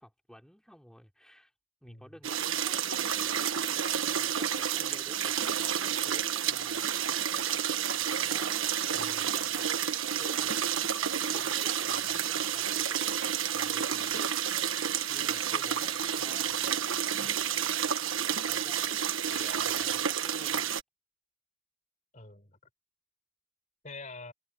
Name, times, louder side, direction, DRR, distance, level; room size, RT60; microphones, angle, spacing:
voice 1, 0.0-1.5 1.8-3.2 4.0-6.9 8.2-10.9 11.2-13.3 13.5-17.4 18.4-19.2 19.6-20.7, equal, 5° left, 4.0 m, -53 dB
sound 1, 2.2-20.8, right 9 dB, 75° right, 1.4 m, -30 dB
Bowed string instrument, 11.4-16.4, right 4 dB, 20° right, 3.5 m, -50 dB
voice 2, 19.3-20.0 22.1-22.6 23.8-24.3, left 3 dB, 35° left, 5.4 m, -46 dB
head